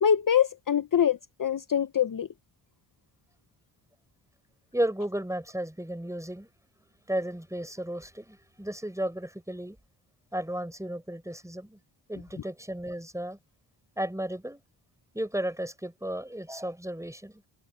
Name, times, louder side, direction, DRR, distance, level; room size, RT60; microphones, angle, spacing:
voice 1, 0.0-2.3, left 8 dB, 45° left, 0.9 m, -24 dB
voice 2, 4.7-6.5 7.1-9.8 10.3-11.8 12.1-13.4 14.0-14.6 15.1-17.4, right 1 dB, 5° right, 5.4 m, -33 dB
cardioid pair, 60°, 48 cm